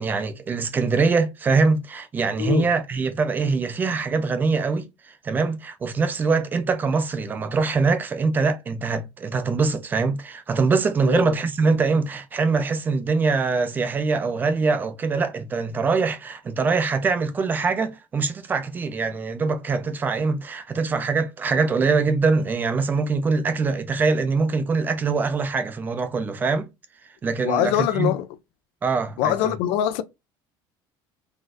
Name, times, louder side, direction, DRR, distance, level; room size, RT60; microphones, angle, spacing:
voice 1, 0.0-26.7 27.2-28.1 28.8-29.6, right 4 dB, 20° right, 0.4 m, -23 dB
voice 2, 27.4-28.3 29.2-30.0, left 11 dB, 75° left, 0.4 m, -23 dB
3.9 x 2.5 x 2.4 m
cardioid pair, 170°, 10 cm